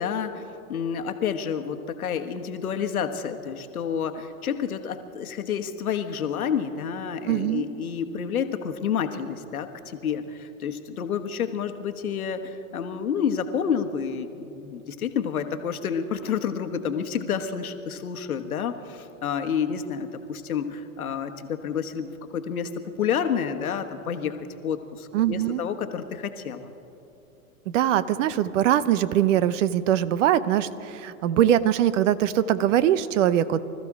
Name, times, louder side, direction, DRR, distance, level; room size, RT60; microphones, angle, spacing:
voice 1, 0.0-22.7 23.0-26.7, left 7 dB, 80° left, 7 dB, 1.3 m, -29 dB
voice 2, 7.3-7.7 25.1-25.6 27.7-33.6, right 11 dB, 60° right, 16 dB, 0.8 m, -22 dB
25.0 x 14.0 x 3.6 m, 2.8 s
hypercardioid pair, 105°, 42 cm